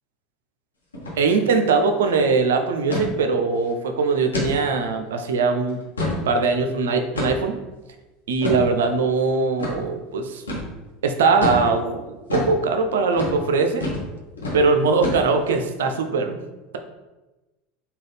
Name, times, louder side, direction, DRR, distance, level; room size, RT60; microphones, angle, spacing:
sound 1, 0.9-1.2 1.5-1.6 1.9-2.2 2.9-3.1 3.6-3.7 4.3-4.5 5.0-5.1 5.7-6.2 7.2-7.5 8.4-8.6 9.6-9.8 10.5-10.7 11.4-11.6 12.3-12.5 13.1-13.4 13.8-14.1 14.4-14.6 15.0-15.5, left 1 dB, 80° left, 0.9 m, -26 dB
voice 1, 1.2-5.8 6.3-7.6 8.3-10.4 11.0-13.9 14.5-16.4, right 4 dB, 70° right, 6 dB, 0.4 m, -21 dB
3.7 x 2.3 x 3.4 m, 1.1 s
figure-of-eight pair, 75°, 0 cm